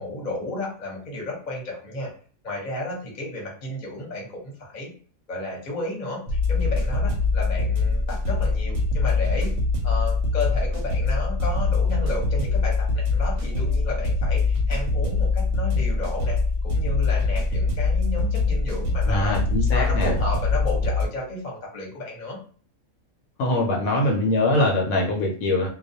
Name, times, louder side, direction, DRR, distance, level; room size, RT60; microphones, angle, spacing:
voice 1, 0.0-2.1 2.4-4.9 5.3-9.5 9.8-19.4 19.7-22.4, left 2 dB, 40° left, -2 dB, 0.8 m, -33 dB
sound 1, 6.3-21.1, left 3 dB, 65° right, 0.8 m, -23 dB
voice 2, 19.1-20.1 23.4-25.7, left 1 dB, 75° left, 1 dB, 1.0 m, -22 dB
2.3 x 2.1 x 2.6 m, 0.43 s
omnidirectional pair, 1.5 m